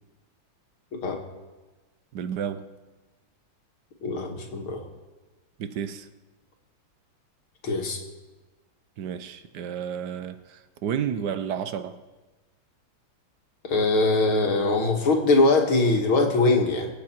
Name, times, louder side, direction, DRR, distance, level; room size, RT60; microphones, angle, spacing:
voice 1, 2.1-2.6 5.6-6.1 9.0-12.0, right 8 dB, 65° right, 11 dB, 1.3 m, -31 dB
voice 2, 4.0-4.8 7.6-8.0 13.6-16.9, left 2 dB, 85° left, 2 dB, 2.6 m, -22 dB
24.5 x 8.5 x 4.5 m, 1.2 s
omnidirectional pair, 2.2 m